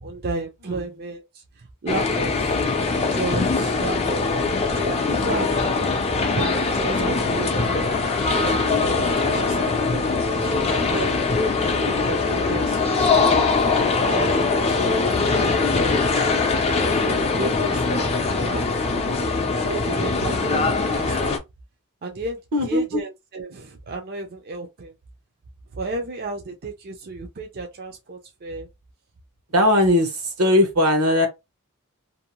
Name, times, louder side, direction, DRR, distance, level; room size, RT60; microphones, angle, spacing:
voice 1, 0.0-2.7 3.1-4.3 4.7-5.8 6.4-7.8 8.3-11.3 11.8-13.4 14.0-16.0 16.9-19.1 19.6-21.4 22.0-24.9 25.7-28.7, right 3 dB, 45° right, 0.5 m, -33 dB
sound 1, 1.9-21.4, left 4 dB, 30° left, 0.5 m, -22 dB
voice 2, 22.5-23.0 29.5-31.3, left 1 dB, 80° right, 1.0 m, -19 dB
2.7 x 2.0 x 2.9 m
head